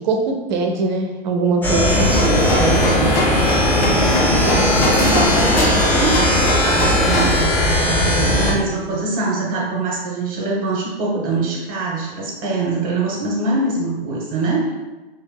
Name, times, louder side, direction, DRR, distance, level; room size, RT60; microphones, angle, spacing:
voice 1, 0.0-2.1, right 3 dB, 50° right, 4 dB, 0.7 m, -21 dB
sound 1, 1.6-8.5, left 1 dB, 5° left, 0.8 m, -18 dB
voice 2, 1.7-3.2 3.9-5.5 5.9-14.7, right 3 dB, 30° right, -3 dB, 1.2 m, -24 dB
sound 2, 1.9-7.4, equal, 80° left, 1.4 m, -22 dB
6.7 x 2.6 x 2.3 m, 1.1 s
figure-of-eight pair, 105°, 30 cm